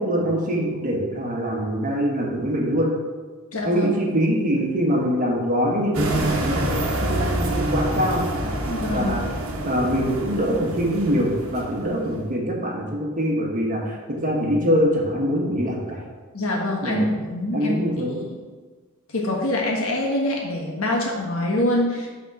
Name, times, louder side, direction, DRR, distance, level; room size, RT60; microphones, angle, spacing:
voice 1, 0.0-2.9 3.6-8.2 8.7-9.2 9.6-16.0 16.8-17.1 17.5-18.2, equal, 40° right, -1 dB, 1.2 m, -24 dB
voice 2, 3.5-3.9 8.7-9.1 16.3-17.8 18.1-18.4 19.1-22.1, left 1 dB, 75° left, -2 dB, 1.4 m, -24 dB
sound 1, 5.9-12.2, right 1 dB, 70° right, 1.1 m, -27 dB
6.0 x 3.6 x 5.9 m, 1.4 s
head